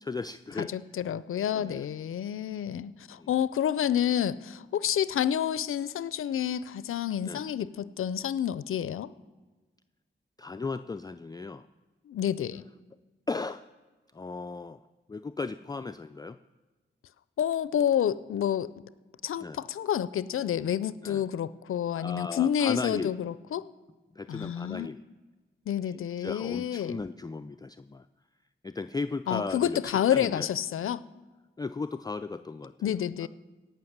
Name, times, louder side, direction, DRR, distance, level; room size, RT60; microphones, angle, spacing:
voice 1, 0.0-0.7 1.5-1.8 3.2-3.3 7.2-7.4 10.4-11.6 13.3-13.7 14.1-14.8 15.1-16.4 19.4-19.6 21.0-21.2 22.0-23.1 24.1-25.0 25.9-28.1 28.6-30.5 31.6-32.9 33.2-33.3, left 4 dB, 20° left, 10 dB, 0.4 m, -36 dB
voice 2, 0.6-9.1 12.1-12.6 17.4-18.7 19.2-23.7 24.3-24.9 25.7-27.0 29.3-31.0 32.8-33.3, left 10 dB, 90° left, 17 dB, 0.4 m, -29 dB
17.5 x 5.8 x 7.3 m, 1.3 s
cardioid pair, 50°, 21 cm